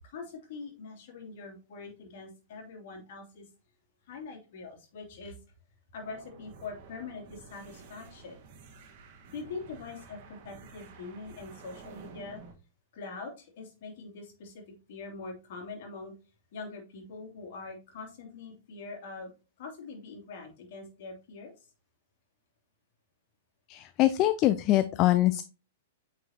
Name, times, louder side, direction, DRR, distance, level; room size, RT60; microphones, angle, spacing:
voice 1, 0.0-3.5 4.0-5.4 5.9-8.4 9.3-12.4 12.9-14.6 14.9-16.1 16.5-19.3 19.6-21.7, left 4 dB, 55° left, 1 dB, 2.8 m, -43 dB
sound 1, 6.0-12.5, right 5 dB, 50° right, 1.4 m, -51 dB
voice 2, 23.7-25.4, left 15 dB, 35° left, 12 dB, 0.4 m, -24 dB
9.0 x 4.9 x 2.9 m, 0.33 s
figure-of-eight pair, 105°, 0 cm